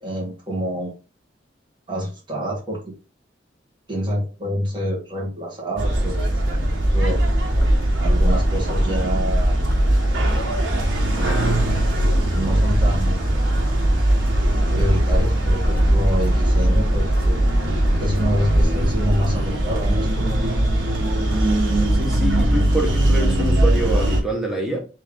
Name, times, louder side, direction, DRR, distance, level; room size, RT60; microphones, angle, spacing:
voice 1, 0.0-0.9 1.9-2.8 3.9-7.2 8.0-9.5 11.1-11.6 12.0-13.2 14.7-17.4 18.0-20.3, equal, 25° right, 1.7 m, -27 dB
sound 1, 5.8-24.2, right 1 dB, 85° right, 1.1 m, -19 dB
voice 2, 21.9-24.8, right 1 dB, 5° right, 1.1 m, -25 dB
3.3 x 3.2 x 3.6 m
head